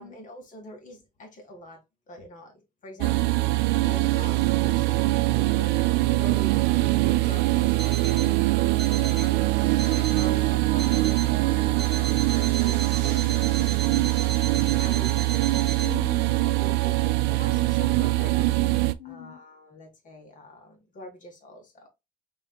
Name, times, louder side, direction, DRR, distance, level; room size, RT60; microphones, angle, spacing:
voice 1, 0.0-7.7 8.0-8.4 9.1-11.7 12.6-14.2 14.8-15.8 16.6-18.6 19.0-21.9, left 1 dB, 50° left, 1.9 m, -45 dB
sound 1, 3.0-18.9, right 19 dB, 90° right, 0.4 m, -23 dB
Alarm, 7.8-8.4 8.8-9.4 9.8-10.4 10.8-11.4 11.8-15.9, right 5 dB, ahead, 2.1 m, -36 dB
voice 2, 8.2-9.2 9.8-10.1 15.8-16.6 17.9-18.1 19.0-19.4, left 9 dB, 80° left, 1.0 m, -43 dB
5.1 x 3.9 x 2.2 m
cardioid pair, 110°, 17 cm